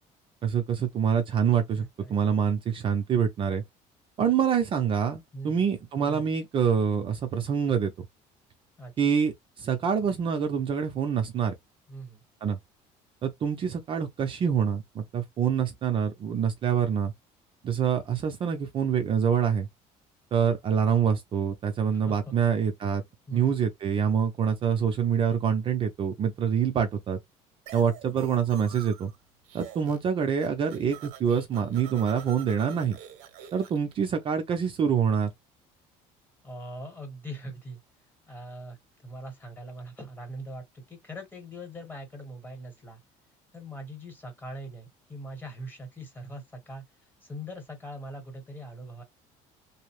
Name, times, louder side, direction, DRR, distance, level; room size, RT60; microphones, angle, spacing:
voice 1, 0.4-1.8 2.1-3.6 4.2-7.9 9.0-11.5 12.4-12.6 13.2-17.1 17.6-19.7 20.3-23.0 23.3-27.2 27.7-29.1 29.5-33.0 33.5-35.3, right 7 dB, 35° right, 0.5 m, -26 dB
voice 2, 1.7-2.4 4.2-4.4 5.3-5.7 6.1-6.3 8.8-8.9 11.9-12.2 21.9-22.3 23.3-23.7 36.4-37.8 38.3-38.8 39.0-43.0 43.5-46.8 47.2-49.0, right 1 dB, 15° left, 1.1 m, -41 dB
sound 1, 27.7-29.2 29.4-30.1 30.4-33.9, right 11 dB, 85° right, 0.7 m, -47 dB
2.7 x 2.0 x 2.9 m
cardioid pair, 140°, 14 cm